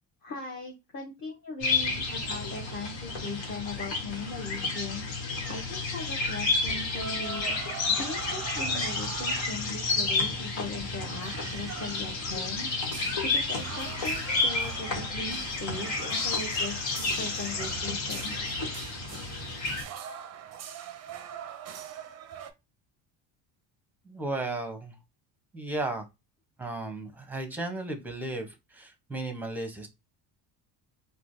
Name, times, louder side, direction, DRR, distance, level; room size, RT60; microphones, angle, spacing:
voice 1, 0.2-5.0 5.5-7.5 8.0-12.7 13.3-18.5, left 3 dB, 25° left, 0 dB, 0.8 m, -39 dB
sound 1, 1.6-19.8, left 3 dB, 65° left, 1.3 m, -31 dB
sound 2, 7.0-10.0 10.3-10.4 10.6-22.5, right 8 dB, 35° right, 0.5 m, -43 dB
voice 2, 24.0-24.9 25.5-26.1 26.6-29.9, right 2 dB, 5° right, 5 dB, 0.8 m, -34 dB
3.0 x 2.3 x 2.6 m, 0.23 s
supercardioid pair, 85°, 47 cm